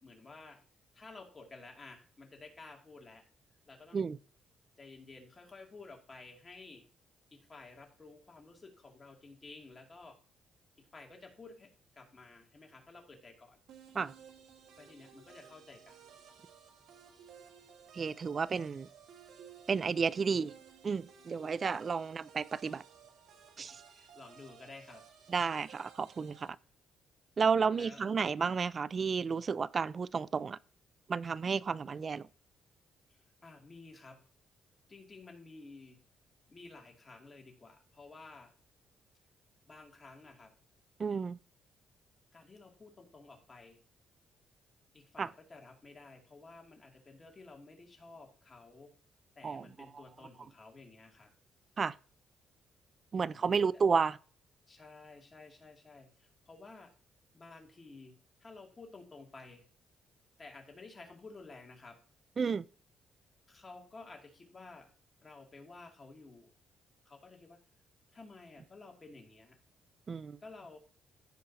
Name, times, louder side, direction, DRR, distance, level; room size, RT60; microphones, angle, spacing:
voice 1, 0.0-0.6 0.9-3.3 3.7-4.0 4.8-6.8 7.3-10.2 10.8-13.6 14.8-16.0 23.6-25.0 27.7-28.0 33.1-34.2 34.9-36.0 36.5-38.5 39.7-40.5 42.3-43.8 44.9-48.9 49.4-51.3 53.3-53.8 54.7-56.9 57.3-59.6 60.4-62.0 63.5-64.9 65.2-66.5 67.0-67.6 68.1-69.6 70.4-70.8, left 3 dB, 30° left, 2.5 m, -53 dB
sound 1, 13.7-26.5, right 8 dB, 80° right, 1.7 m, -56 dB
voice 2, 17.9-18.9 19.7-20.5 20.8-22.8 23.6-23.8 25.3-26.6 27.4-30.6 31.1-32.3 41.0-41.4 45.2-45.3 49.4-49.7 51.8-51.9 53.1-54.2 62.4-62.7 70.1-70.4, right 5 dB, 40° right, 0.3 m, -32 dB
15.0 x 5.1 x 2.8 m
cardioid pair, 90°, 0 cm